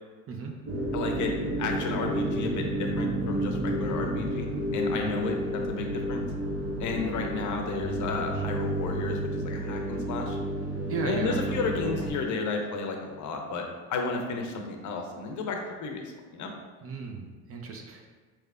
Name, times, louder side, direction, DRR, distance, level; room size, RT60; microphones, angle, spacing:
sound 1, 0.7-12.1, right 1 dB, 65° right, 1.2 m, -31 dB
voice 1, 0.9-4.5 4.7-6.2 6.8-10.4 11.0-13.6 13.9-16.0 16.3-16.5, left 4 dB, 45° left, 3 dB, 0.7 m, -32 dB
voice 2, 10.9-12.1 16.8-18.0, right 4 dB, 35° right, 2 dB, 0.5 m, -36 dB
4.3 x 3.3 x 2.4 m, 1.4 s
supercardioid pair, 85°, 41 cm